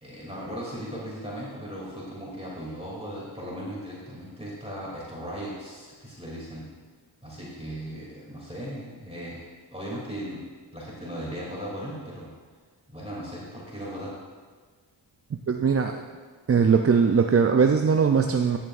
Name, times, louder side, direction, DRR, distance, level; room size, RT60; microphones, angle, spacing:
voice 1, 0.0-6.7 7.2-9.4 9.7-10.4 10.7-12.3 12.9-14.2, equal, 15° right, -6 dB, 2.8 m, -37 dB
voice 2, 15.3-16.0 16.5-18.6, right 6 dB, 30° right, 5 dB, 0.5 m, -20 dB
13.5 x 7.4 x 2.5 m, 1.5 s
cardioid pair, 50°, 46 cm